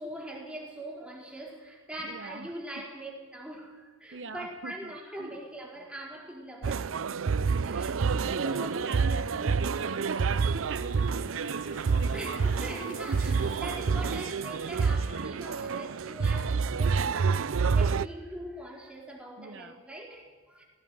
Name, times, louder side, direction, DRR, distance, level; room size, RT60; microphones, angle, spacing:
voice 1, 0.0-7.0 7.6-9.2 12.1-20.6, right 1 dB, 5° right, -2 dB, 4.5 m, -42 dB
voice 2, 2.0-2.5 2.7-2.8 4.1-5.3 7.4-12.8 13.1-14.4 14.7-15.4 19.4-19.8, right 3 dB, 60° right, 10 dB, 0.9 m, -42 dB
sound 1, 6.6-18.1, right 5 dB, 85° right, 0.5 m, -28 dB
sound 2, 8.4-14.3, left 4 dB, 40° left, 2.5 m, -53 dB
17.5 x 17.0 x 9.5 m, 1.5 s
head